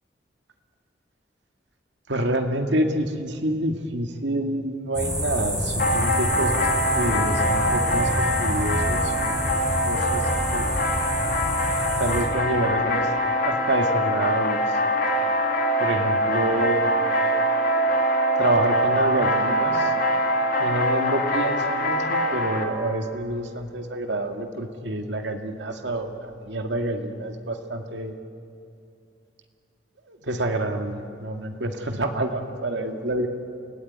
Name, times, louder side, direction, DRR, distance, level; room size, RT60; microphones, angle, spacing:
voice 1, 2.1-6.7 6.9-9.4 9.8-10.8 12.0-13.1 13.4-14.8 15.8-17.0 18.4-19.9 20.6-28.1 30.1-33.3, right 1 dB, 80° right, 5 dB, 2.1 m, -27 dB
sound 1, 4.9-12.2, equal, 5° right, 4.8 m, -28 dB
sound 2, 5.8-22.6, equal, 55° left, 2.5 m, -23 dB
28.5 x 17.0 x 9.5 m, 2.6 s
head